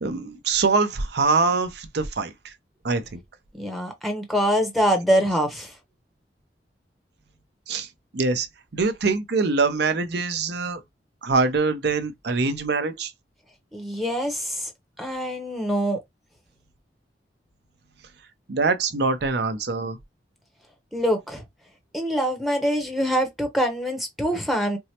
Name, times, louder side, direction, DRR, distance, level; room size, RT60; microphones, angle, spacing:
voice 1, 0.0-2.5 2.8-3.2 7.7-7.9 8.1-8.5 8.7-10.8 11.2-13.1 18.5-20.0, right 4 dB, 65° right, 0.7 m, -24 dB
voice 2, 3.6-5.7 13.7-14.7 15.0-16.0 20.9-21.4 21.9-24.8, equal, ahead, 0.8 m, -24 dB
4.5 x 2.0 x 2.8 m
head